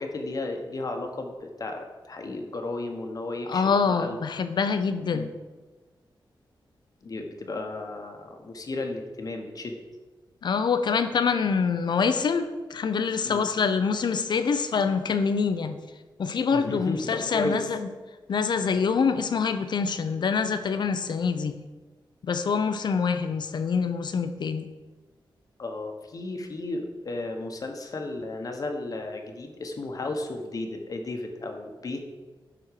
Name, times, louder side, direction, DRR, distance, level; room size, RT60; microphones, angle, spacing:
voice 1, 0.0-4.2 5.1-5.3 7.0-9.8 13.2-13.4 16.5-17.7 25.6-32.1, left 2 dB, 45° left, 4 dB, 1.2 m, -34 dB
voice 2, 3.5-5.3 10.4-15.8 16.2-17.9 18.3-21.6 22.2-24.7, left 5 dB, 60° left, 10 dB, 0.8 m, -25 dB
11.0 x 4.4 x 6.7 m, 1.3 s
wide cardioid pair, 150°, 8 cm